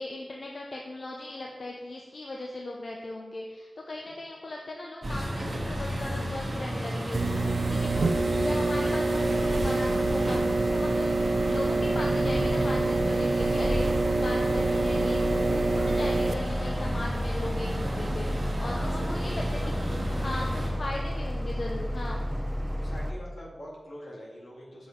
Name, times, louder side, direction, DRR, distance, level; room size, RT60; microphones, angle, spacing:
voice 1, 0.0-11.1 11.5-20.0 20.2-22.2, left 2 dB, 55° left, -1 dB, 0.7 m, -38 dB
sound 1, 5.0-20.7, equal, 45° right, 1.3 m, -33 dB
sound 2, 7.1-16.3, right 3 dB, 70° right, 0.4 m, -26 dB
sound 3, 7.9-23.1, equal, 10° right, 0.5 m, -33 dB
voice 2, 18.6-19.7 22.8-24.9, equal, 80° left, -4 dB, 1.9 m, -43 dB
6.0 x 5.0 x 4.5 m, 1.3 s
wide cardioid pair, 90°, 0 cm